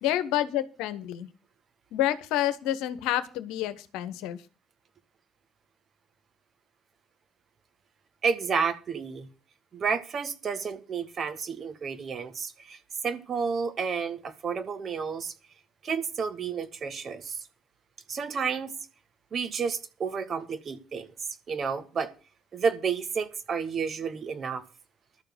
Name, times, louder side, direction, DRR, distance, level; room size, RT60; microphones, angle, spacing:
voice 1, 0.0-1.3 1.9-4.4, left 12 dB, 70° left, 13 dB, 1.1 m, -28 dB
voice 2, 8.2-9.3 9.7-15.3 15.8-17.4 18.1-18.7 19.3-21.1 21.5-22.1 22.5-24.6, right 6 dB, 50° right, 11 dB, 1.8 m, -31 dB
12.5 x 7.0 x 7.9 m, 0.35 s
hypercardioid pair, 50°, 0 cm